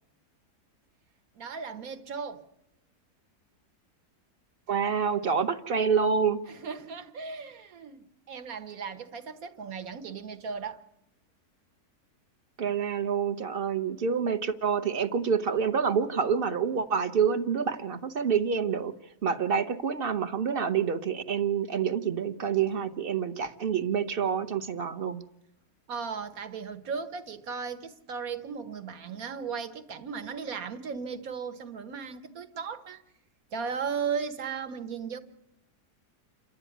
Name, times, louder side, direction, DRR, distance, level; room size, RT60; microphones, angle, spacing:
voice 1, 1.3-2.4 6.5-10.8 25.9-33.0 33.5-35.2, right 6 dB, 60° right, 1.6 m, -36 dB
voice 2, 4.7-6.4 12.6-18.9 19.2-25.2, right 6 dB, 40° right, 1.0 m, -27 dB
28.0 x 12.0 x 9.3 m
omnidirectional pair, 1.7 m